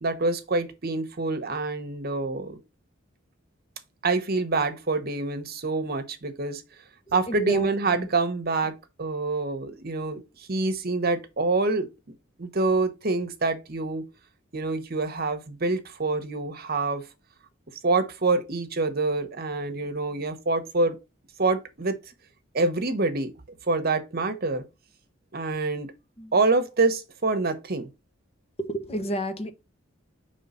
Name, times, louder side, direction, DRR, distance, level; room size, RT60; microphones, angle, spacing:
voice 1, 0.0-2.6 4.0-6.6 7.1-10.2 10.5-11.9 12.4-14.0 14.5-17.0 17.8-21.0 21.4-22.0 22.5-23.3 23.7-24.6 25.3-25.9 26.3-27.9, right 3 dB, 50° right, 0.9 m, -26 dB
voice 2, 7.1-8.1 26.2-26.4 28.6-29.5, right 1 dB, 30° left, 0.8 m, -32 dB
5.4 x 3.3 x 5.4 m
head